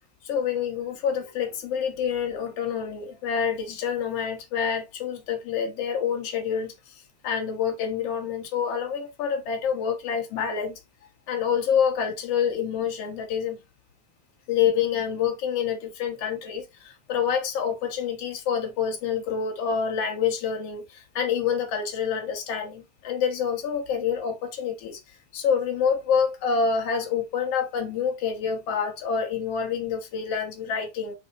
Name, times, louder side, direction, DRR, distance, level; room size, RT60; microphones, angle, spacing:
voice 1, 0.2-10.8 11.3-13.6 14.5-25.0 25.3-31.1, left 7 dB, 55° left, 1.9 m, -27 dB
5.6 x 4.1 x 4.1 m
omnidirectional pair, 3.9 m